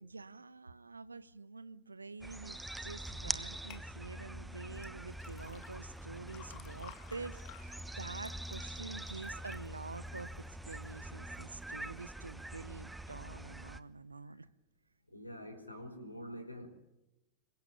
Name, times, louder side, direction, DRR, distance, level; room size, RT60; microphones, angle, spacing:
voice 1, 0.0-14.5, right 3 dB, 80° right, 1.1 m, -47 dB
sound 1, 2.2-13.8, right 1 dB, 5° right, 1.2 m, -44 dB
sound 2, 3.7-3.9 4.8-10.9 11.3-11.9 12.3-12.4, left 11 dB, 40° left, 2.2 m, -57 dB
voice 2, 15.1-16.7, equal, 85° left, 5.0 m, -47 dB
27.0 x 23.5 x 9.1 m
figure-of-eight pair, 90°, 0 cm